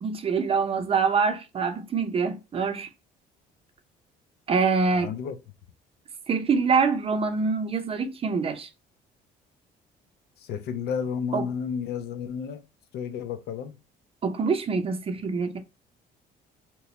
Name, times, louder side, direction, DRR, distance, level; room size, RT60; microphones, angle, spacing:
voice 1, 0.0-2.9 4.5-5.1 6.3-8.7 11.3-11.4 14.2-15.6, right 5 dB, 35° right, 0.6 m, -25 dB
voice 2, 4.9-5.4 10.4-12.6 12.9-13.8, left 7 dB, 70° left, 0.6 m, -31 dB
2.9 x 2.2 x 4.0 m
cardioid pair, 110°, 17 cm